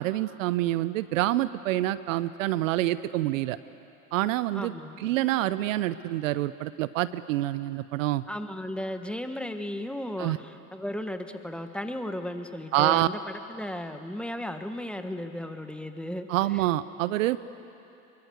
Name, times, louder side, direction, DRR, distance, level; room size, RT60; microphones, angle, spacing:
voice 1, 0.0-3.6 4.1-8.2 10.2-10.4 12.7-13.1 16.3-17.4, right 15 dB, 65° right, 16 dB, 0.7 m, -27 dB
voice 2, 4.5-5.0 8.3-13.2 13.5-16.3, left 1 dB, ahead, 7 dB, 1.5 m, -35 dB
24.5 x 23.0 x 8.0 m, 2.9 s
hypercardioid pair, 85°, 43 cm